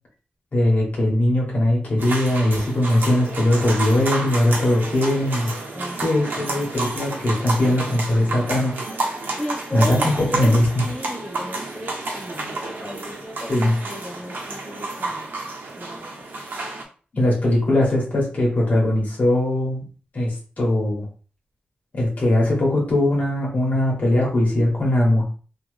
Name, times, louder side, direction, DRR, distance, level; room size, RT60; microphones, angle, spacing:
voice 1, 0.5-5.5 6.0-8.7 9.7-10.8 13.5-13.7 17.1-19.9 20.1-21.1 21.9-25.2, left 1 dB, 50° left, -4 dB, 1.6 m, -20 dB
sound 1, 2.0-16.8, right 2 dB, 75° right, 0.9 m, -30 dB
voice 2, 5.7-6.5 7.4-8.1 9.3-15.3 15.8-16.3, equal, 10° left, -4 dB, 1.1 m, -35 dB
3.1 x 2.2 x 3.3 m, 0.39 s
wide cardioid pair, 105°, 3 cm